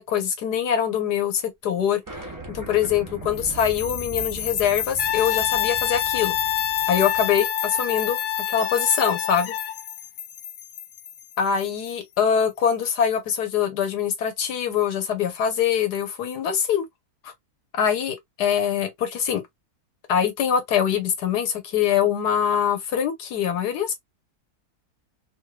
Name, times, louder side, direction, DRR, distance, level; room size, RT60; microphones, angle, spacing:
voice 1, 0.0-2.0 2.5-6.4 6.9-8.2 8.5-9.5 11.4-16.8 17.2-17.3 17.7-19.4 20.1-23.9, left 8 dB, 90° left, 1.5 m, -23 dB
sound 1, 2.1-7.4, right 3 dB, 15° right, 0.8 m, -40 dB
sound 2, 3.3-12.4, left 8 dB, 55° left, 0.9 m, -32 dB
Brass instrument, 5.0-9.8, left 12 dB, 70° left, 0.5 m, -27 dB
3.2 x 3.1 x 2.2 m
omnidirectional pair, 1.7 m